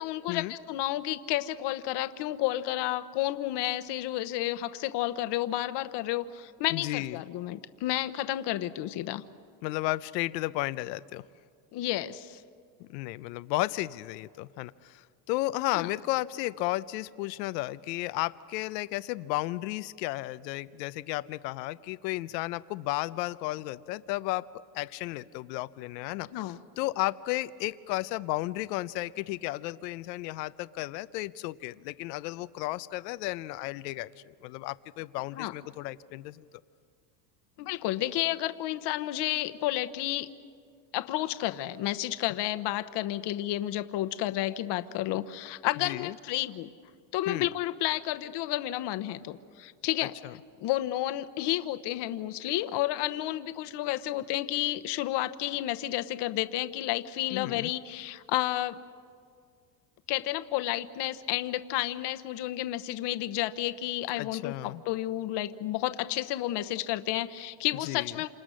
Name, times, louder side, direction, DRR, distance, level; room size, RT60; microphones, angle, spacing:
voice 1, 0.0-9.2 11.7-12.4 15.7-15.9 26.3-26.6 35.3-35.5 37.6-40.3 40.9-46.7 47.1-50.1 50.6-58.8 60.1-68.3, left 15 dB, 60° left, 11 dB, 1.0 m, -31 dB
voice 2, 6.7-7.2 9.6-11.2 12.8-34.1 34.4-36.4 45.8-46.1 47.3-47.5 50.2-50.3 57.3-57.7 64.2-64.8 67.8-68.1, left 18 dB, 90° left, 15 dB, 0.7 m, -33 dB
28.0 x 27.5 x 6.3 m, 2.1 s
supercardioid pair, 105°, 48 cm